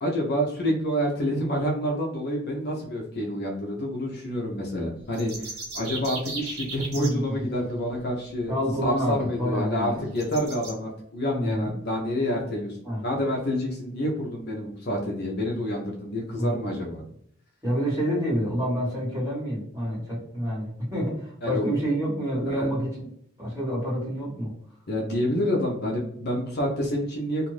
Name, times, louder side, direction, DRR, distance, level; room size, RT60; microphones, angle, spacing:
voice 1, 0.0-8.5 8.8-17.0 21.4-21.7 22.4-22.8 24.9-27.5, equal, 50° left, -1 dB, 0.6 m, -28 dB
sound 1, 5.0-7.1 8.9-9.0 9.4-9.5 10.2-10.7, right 3 dB, 85° right, 0.9 m, -36 dB
voice 2, 6.9-7.5 8.5-10.0 11.3-11.7 12.8-13.0 16.4-16.6 17.6-23.1 23.4-24.5, equal, 15° right, -9 dB, 1.4 m, -28 dB
2.5 x 2.5 x 3.2 m, 0.68 s
head